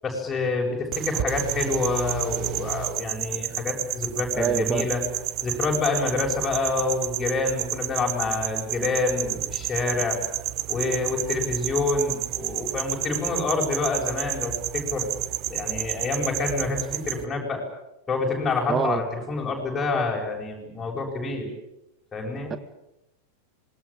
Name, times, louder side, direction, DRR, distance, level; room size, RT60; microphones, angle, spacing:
voice 1, 0.0-5.0 5.4-10.2 10.7-15.1 15.5-17.6 18.1-21.5 22.1-22.5, left 3 dB, 15° left, -2 dB, 7.8 m, -27 dB
sound 1, 0.9-17.2, right 15 dB, 40° right, 1.3 m, -31 dB
voice 2, 4.3-4.9 18.7-19.0 22.5-22.6, right 7 dB, 20° right, 13 dB, 1.6 m, -25 dB
27.0 x 21.5 x 9.0 m, 0.89 s
figure-of-eight pair, 90°, 0 cm